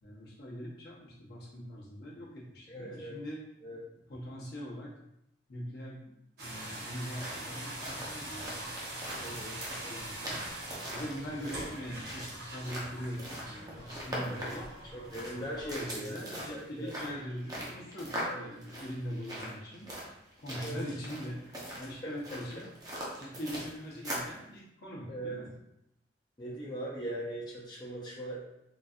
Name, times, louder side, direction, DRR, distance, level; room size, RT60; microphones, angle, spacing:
voice 1, 0.0-3.4 4.1-4.9 5.5-8.7 9.2-10.4 10.9-14.7 15.6-19.9 20.4-21.4 21.8-22.7 23.2-25.5, equal, 60° left, -4 dB, 0.9 m, -42 dB
voice 2, 2.7-3.2 3.6-3.8 9.2-9.6 11.4-11.5 14.3-14.5 14.9-17.1 18.2-18.4 20.6-20.8 22.0-22.4 25.1-25.4 26.4-28.4, right 1 dB, 25° left, -6 dB, 0.6 m, -40 dB
sound 1, 6.4-15.8, right 1 dB, 60° right, 1.1 m, -43 dB
sound 2, 7.0-24.4, equal, 20° right, 0.7 m, -42 dB
3.9 x 2.5 x 2.4 m, 0.82 s
head